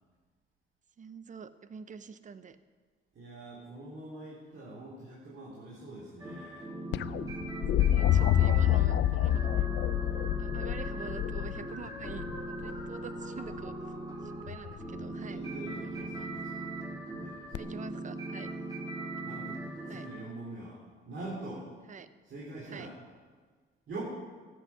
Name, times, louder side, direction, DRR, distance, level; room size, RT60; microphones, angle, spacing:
voice 1, 1.0-2.6 7.8-9.7 10.4-13.8 14.2-15.4 15.8-16.3 17.6-18.5 19.9-20.1 21.9-22.1 22.6-22.9, right 6 dB, 40° right, 13 dB, 0.7 m, -46 dB
voice 2, 3.2-6.7 15.1-16.7 17.2-17.8 18.4-18.6 19.2-20.8 21.1-21.7 22.2-22.9 23.9-24.0, right 2 dB, 65° right, -6 dB, 3.4 m, -44 dB
sound 1, 6.2-20.2, right 2 dB, 20° right, 3.8 m, -40 dB
sound 2, 6.9-12.9 14.5-15.0 17.5-17.6, left 12 dB, 65° left, 0.4 m, -28 dB
13.5 x 8.5 x 6.0 m, 1.5 s
cardioid pair, 90°, 20 cm